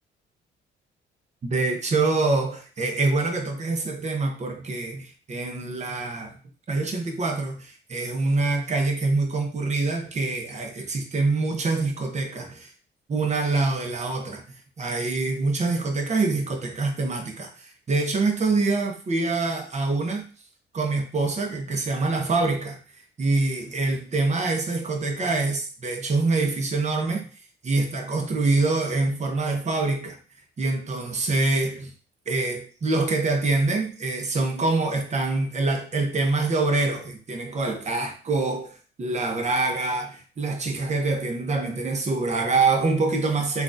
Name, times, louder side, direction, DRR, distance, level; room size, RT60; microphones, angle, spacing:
voice 1, 1.4-6.3 6.7-12.7 13.1-14.4 14.8-20.2 20.7-22.8 23.2-27.2 27.6-30.2 30.6-31.9 32.3-43.6, right 3 dB, 35° right, 4 dB, 0.8 m, -25 dB
3.6 x 2.4 x 2.5 m, 0.39 s
cardioid pair, 90°, 20 cm